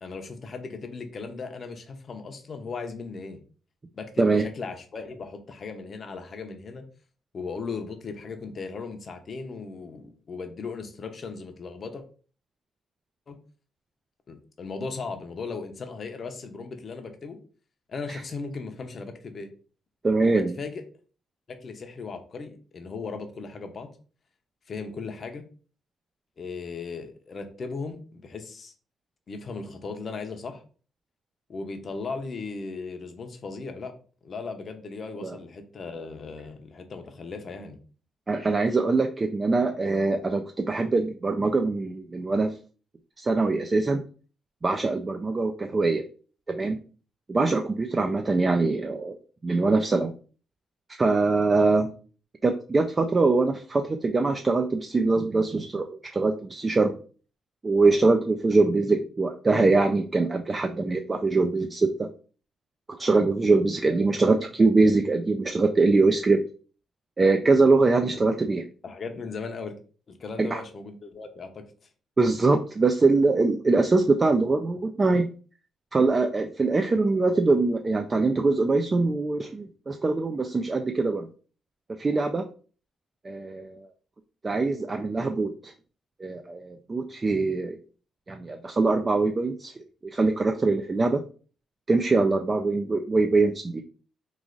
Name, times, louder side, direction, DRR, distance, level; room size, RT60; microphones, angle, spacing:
voice 1, 0.0-3.4 3.9-6.8 7.3-12.0 13.3-13.4 14.3-17.4 17.9-19.5 20.2-20.8 21.6-23.9 24.7-25.4 26.4-28.7 29.3-30.6 31.5-33.9 34.2-37.8 48.0-48.1 68.8-69.8 70.1-71.6, left 4 dB, 45° left, 5 dB, 0.6 m, -37 dB
voice 2, 20.0-20.5 35.2-35.3 38.3-42.5 43.2-44.0 44.6-46.0 46.5-46.8 47.3-49.2 49.4-50.1 51.0-51.9 52.4-56.9 57.6-62.1 62.9-66.4 67.2-68.7 70.4-70.6 72.2-75.3 75.9-81.3 82.0-82.5 83.2-83.9 84.4-85.7 86.2-87.8 88.3-89.7 90.1-91.2 91.9-93.8, right 3 dB, 25° right, 6 dB, 0.3 m, -23 dB
3.1 x 2.4 x 3.7 m, 0.39 s
cardioid pair, 110°, 0 cm